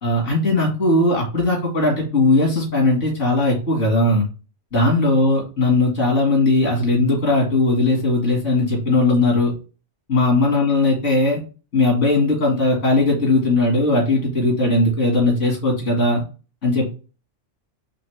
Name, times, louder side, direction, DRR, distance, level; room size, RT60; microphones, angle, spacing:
voice 1, 0.0-4.2 4.7-9.5 10.1-11.4 11.7-16.2 16.6-16.9, left 2 dB, 75° left, 0 dB, 2.3 m, -18 dB
4.3 x 3.4 x 3.3 m, 0.34 s
omnidirectional pair, 1.3 m